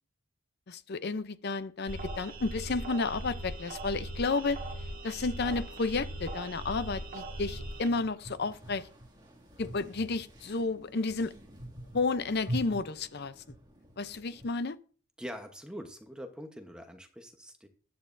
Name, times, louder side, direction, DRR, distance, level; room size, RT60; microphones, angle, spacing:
voice 1, 0.7-4.6 5.0-8.9 9.6-11.3 11.9-13.3 14.0-14.8, left 3 dB, 50° left, 0.6 m, -32 dB
sound 1, 1.9-7.9, right 1 dB, 40° right, 1.9 m, -40 dB
sound 2, 4.9-14.5, right 1 dB, 20° right, 2.1 m, -46 dB
voice 2, 15.2-17.7, equal, 5° right, 1.0 m, -44 dB
14.0 x 10.5 x 2.6 m
head